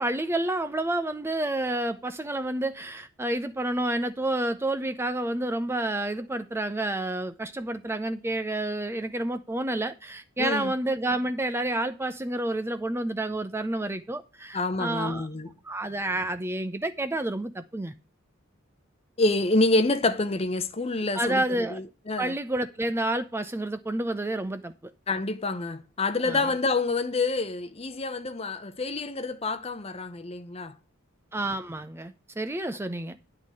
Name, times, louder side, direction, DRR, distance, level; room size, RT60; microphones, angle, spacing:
voice 1, 0.0-15.3 15.6-17.9 21.1-21.8 22.2-24.7 26.2-26.6 31.3-33.2, right 1 dB, 10° right, 0.5 m, -29 dB
voice 2, 10.4-10.7 14.5-15.5 19.2-22.3 25.1-30.7, left 2 dB, 30° left, 0.8 m, -27 dB
10.0 x 3.9 x 7.5 m
head